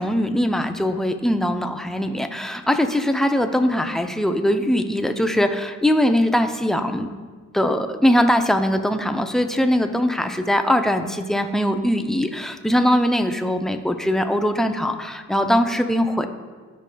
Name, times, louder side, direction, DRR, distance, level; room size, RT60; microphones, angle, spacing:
voice 1, 0.0-7.1 7.5-16.3, equal, ahead, 6 dB, 0.5 m, -21 dB
13.5 x 4.9 x 2.3 m, 1.5 s
cardioid pair, 90°, 30 cm